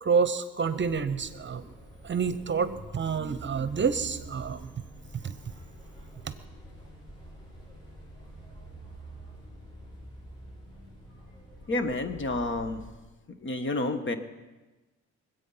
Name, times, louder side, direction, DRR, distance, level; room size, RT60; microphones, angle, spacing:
voice 1, 0.0-1.7 2.0-4.7 5.1-5.4 6.2-6.3, right 6 dB, 40° right, 13 dB, 0.9 m, -28 dB
sound 1, 0.7-13.0, right 1 dB, 15° left, 6.5 m, -47 dB
voice 2, 11.7-12.8 13.4-14.1, left 2 dB, 40° left, 9 dB, 1.4 m, -29 dB
25.0 x 8.4 x 5.7 m, 1.2 s
cardioid pair, 90°, 30 cm